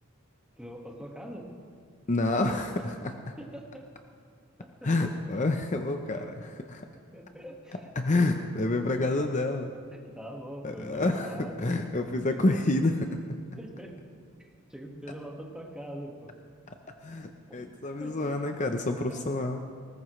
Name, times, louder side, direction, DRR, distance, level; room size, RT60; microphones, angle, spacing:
voice 1, 0.6-1.5 2.8-2.9 3.4-3.8 4.6-5.1 7.1-7.9 8.1-8.2 10.2-11.7 12.3-12.5 13.6-14.0 14.4-16.3 17.5-17.7 18.0-18.3 19.1-19.2, equal, 5° right, -1 dB, 1.7 m, -43 dB
voice 2, 2.1-3.3 4.8-6.8 8.0-9.7 10.6-13.2 16.7-16.8 17.0-19.6, left 2 dB, 35° left, 5 dB, 0.7 m, -28 dB
20.5 x 18.5 x 3.2 m, 2.1 s
head